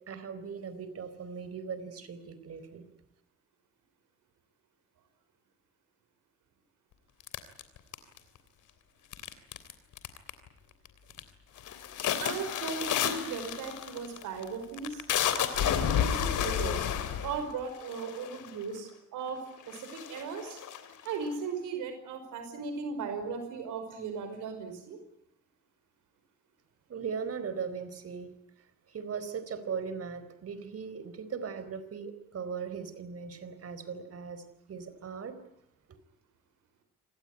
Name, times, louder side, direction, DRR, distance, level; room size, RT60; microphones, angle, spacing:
voice 1, 0.1-2.8 26.9-28.3 28.9-34.4 34.7-35.4, right 6 dB, 50° right, 12 dB, 4.3 m, -38 dB
sound 1, 7.3-8.4 9.1-9.7 10.0-10.5 10.9-11.2 11.6-18.6 19.3-19.4 19.7-21.3, left 9 dB, 75° left, 3.2 m, -31 dB
voice 2, 12.2-15.0 15.4-16.9 17.2-19.4 19.7-20.6 21.0-25.0, right 5 dB, 85° right, 7 dB, 5.4 m, -37 dB
27.0 x 18.5 x 9.8 m, 0.79 s
cardioid pair, 90°, 30 cm